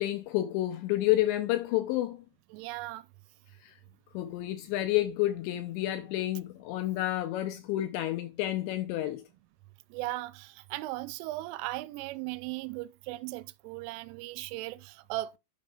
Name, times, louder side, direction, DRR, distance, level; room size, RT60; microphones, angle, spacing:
voice 1, 0.0-2.2 3.6-3.8 4.1-9.2, left 15 dB, 80° left, 2.7 m, -30 dB
voice 2, 2.5-3.0 9.9-15.3, right 18 dB, 85° right, 3.1 m, -37 dB
12.5 x 5.3 x 2.4 m
omnidirectional pair, 5.7 m